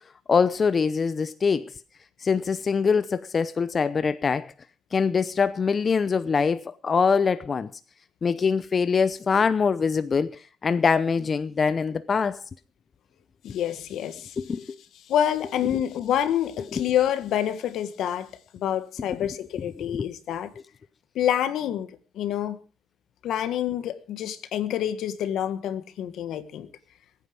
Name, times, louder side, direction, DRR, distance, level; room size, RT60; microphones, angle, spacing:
voice 1, 0.3-1.7 2.2-4.5 4.9-7.7 8.2-12.4 14.4-14.8 15.7-15.8 16.7-16.8 19.2-19.3 19.9-20.1, left 5 dB, 40° left, 0.7 m, -24 dB
voice 2, 13.4-14.3 15.1-18.3 18.5-20.5 21.1-22.6 23.2-26.7, left 10 dB, 80° left, 1.6 m, -27 dB
21.5 x 9.5 x 5.2 m
cardioid pair, 90°, 0 cm